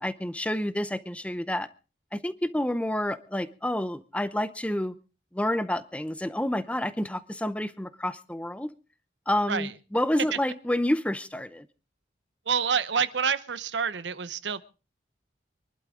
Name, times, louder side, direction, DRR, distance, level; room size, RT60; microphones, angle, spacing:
voice 1, 0.0-1.7 2.1-4.9 5.3-8.7 9.3-11.6, left 1 dB, 5° left, 14 dB, 0.6 m, -29 dB
voice 2, 12.5-14.6, right 6 dB, 85° right, 15 dB, 0.9 m, -27 dB
25.5 x 11.5 x 3.7 m, 0.34 s
head